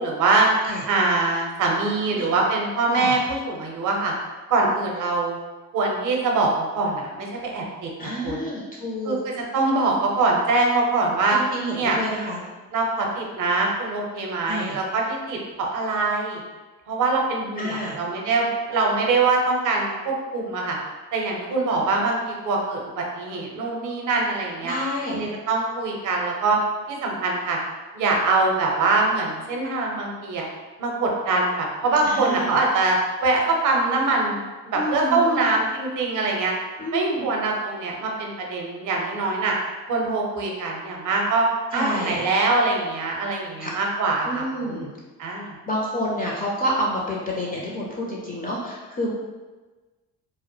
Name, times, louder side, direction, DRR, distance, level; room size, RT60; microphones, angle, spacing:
voice 1, 0.0-0.5 0.9-4.1 4.5-5.4 5.7-8.5 9.0-11.4 11.8-12.0 12.7-16.4 16.9-20.8 21.1-24.7 25.1-26.6 26.9-27.6 27.9-30.5 30.8-36.5 36.9-39.5 39.9-41.5 41.7-44.9 45.2-45.6, right 3 dB, 40° right, 0 dB, 0.6 m, -23 dB
voice 2, 8.0-9.2 11.3-12.4 14.5-14.8 17.6-18.0 24.6-25.3 32.0-32.6 34.7-35.3 36.8-37.3 41.7-42.2 43.6-43.7 44.2-44.9 45.7-49.1, equal, 20° left, -4 dB, 0.4 m, -29 dB
2.1 x 2.0 x 3.0 m, 1.3 s
figure-of-eight pair, 45°, 48 cm